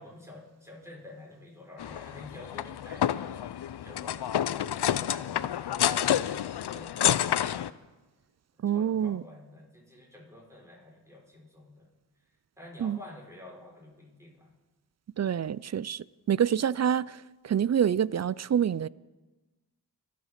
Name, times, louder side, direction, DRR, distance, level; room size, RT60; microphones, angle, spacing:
voice 1, 0.0-7.8 8.5-12.3 12.6-14.5 15.4-15.5, left 1 dB, 5° right, 5.4 m, -50 dB
sound 1, 1.8-7.7, left 10 dB, 70° left, 0.6 m, -29 dB
voice 2, 8.6-9.2 12.8-13.0 15.2-18.9, right 9 dB, 40° right, 0.4 m, -27 dB
24.5 x 8.5 x 5.9 m
cardioid pair, 50°, 41 cm